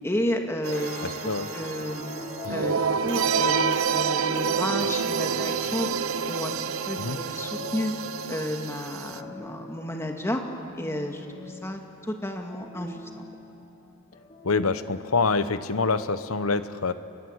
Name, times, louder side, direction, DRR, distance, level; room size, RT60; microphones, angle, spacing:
voice 1, 0.0-2.1 2.5-5.9 6.3-6.6 6.8-7.9 8.3-10.4 10.7-11.8 12.1-13.2, left 1 dB, 10° left, 3 dB, 2.0 m, -31 dB
sound 1, 0.6-9.2, right 6 dB, 80° right, 0.9 m, -28 dB
sound 2, 0.7-11.9, equal, 50° left, 4.1 m, -45 dB
voice 2, 1.0-1.5 7.0-7.2 14.4-16.9, left 4 dB, 90° left, 12 dB, 1.1 m, -26 dB
sound 3, 1.7-6.2 6.7-16.4, left 3 dB, 35° left, 3.4 m, -46 dB
29.5 x 22.5 x 8.1 m, 2.8 s
head